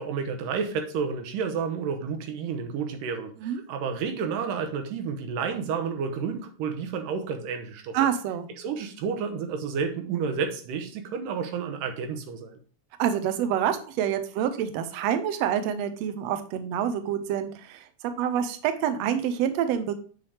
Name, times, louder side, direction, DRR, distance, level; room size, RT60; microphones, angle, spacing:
voice 1, 0.0-8.0 8.6-12.6, right 6 dB, 90° right, 5 dB, 2.6 m, -31 dB
voice 2, 7.9-8.5 13.0-17.8 18.2-19.9, right 9 dB, 75° right, 9 dB, 1.6 m, -27 dB
7.3 x 5.7 x 3.4 m, 0.41 s
omnidirectional pair, 3.7 m